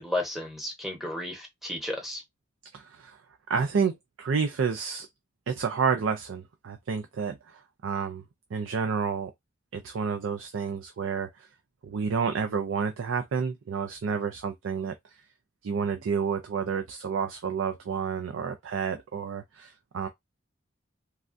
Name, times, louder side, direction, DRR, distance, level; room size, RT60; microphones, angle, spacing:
voice 1, 0.0-2.2, left 1 dB, ahead, 1.0 m, -33 dB
voice 2, 2.7-3.2 3.5-5.1 5.5-8.2 8.5-9.3 9.7-11.5 11.8-14.9 15.6-20.1, right 6 dB, 90° right, 0.4 m, -30 dB
3.2 x 2.3 x 2.5 m
head